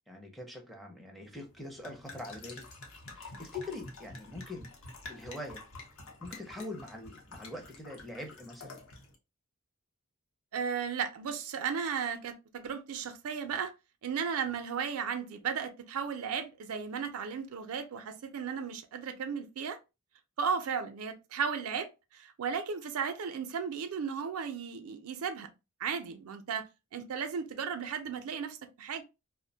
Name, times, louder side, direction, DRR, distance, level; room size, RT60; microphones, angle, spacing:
voice 1, 0.1-2.7 3.1-4.7 5.1-5.6 6.2-8.8, left 2 dB, ahead, 0.4 m, -43 dB
sound 1, 1.3-9.1, left 2 dB, 65° left, 0.7 m, -49 dB
voice 2, 10.5-13.7 14.0-19.8 20.4-25.5 25.8-29.0, right 6 dB, 70° right, 0.4 m, -35 dB
2.5 x 2.1 x 2.6 m
head